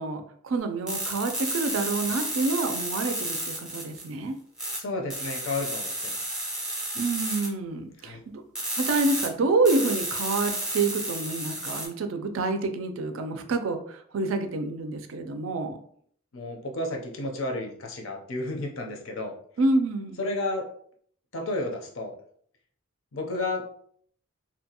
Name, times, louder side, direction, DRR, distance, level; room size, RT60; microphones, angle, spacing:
voice 1, 0.0-4.3 6.9-8.4 8.8-15.8 19.6-20.2, right 3 dB, 70° right, 7 dB, 0.4 m, -27 dB
sound 1, 0.9-4.1 4.6-4.8 5.1-7.5 8.5-9.3 9.6-11.9, right 1 dB, 5° right, 0.5 m, -32 dB
voice 2, 4.8-6.3 8.0-8.2 16.3-19.3 20.2-20.7 21.3-22.1 23.1-23.6, left 2 dB, 70° left, 2 dB, 0.6 m, -32 dB
2.7 x 2.2 x 2.8 m, 0.62 s
head